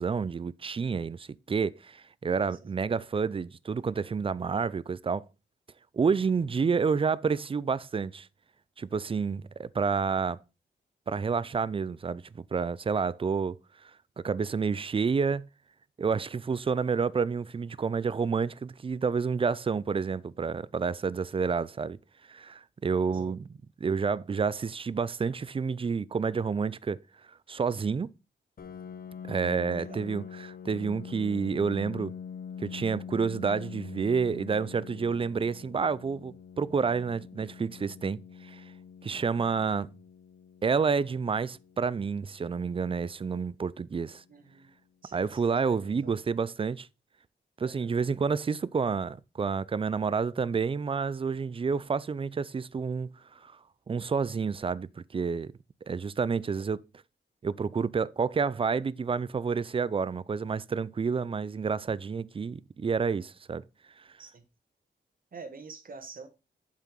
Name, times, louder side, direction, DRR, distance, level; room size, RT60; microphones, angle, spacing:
voice 1, 0.0-5.3 5.9-8.3 8.8-10.4 11.1-13.6 14.2-15.5 16.0-22.0 22.3-23.5 23.8-27.0 27.5-28.1 29.3-32.1 32.6-38.6 39.0-39.9 40.6-44.2 45.1-46.9 47.6-53.1 53.4-53.6 53.9-55.5 55.9-56.8 57.4-63.6, right 5 dB, 30° right, 0.4 m, -29 dB
Piano, 28.6-44.0, left 7 dB, 50° left, 0.7 m, -45 dB
voice 2, 29.6-30.1 44.3-44.7 45.0-46.1 47.6-47.9 64.2-64.4 65.3-66.3, right 4 dB, 50° right, 1.4 m, -47 dB
7.5 x 5.7 x 4.7 m
wide cardioid pair, 115°, 19 cm